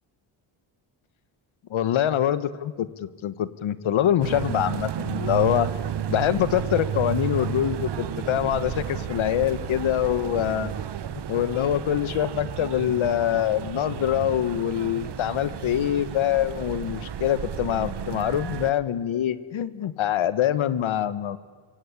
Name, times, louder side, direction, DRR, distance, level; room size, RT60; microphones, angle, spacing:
voice 1, 1.7-5.7 6.1-10.7 11.3-21.4, left 11 dB, 70° left, 14 dB, 1.5 m, -24 dB
sound 1, 4.2-18.7, right 10 dB, 55° right, 1.2 m, -32 dB
26.0 x 23.5 x 8.6 m, 1.5 s
cardioid pair, 115°, 50 cm